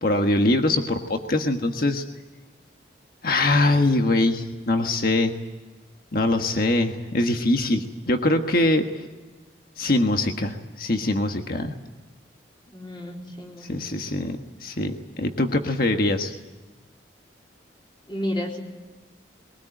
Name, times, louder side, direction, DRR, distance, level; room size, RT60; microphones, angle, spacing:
voice 1, 0.0-2.0 3.2-5.3 6.1-9.0 9.8-11.7 13.6-14.4 14.6-16.3, left 2 dB, 50° left, 5 dB, 1.5 m, -23 dB
voice 2, 12.7-13.9 18.1-18.6, left 1 dB, 25° left, 0 dB, 3.9 m, -32 dB
23.0 x 18.5 x 9.1 m, 1.2 s
head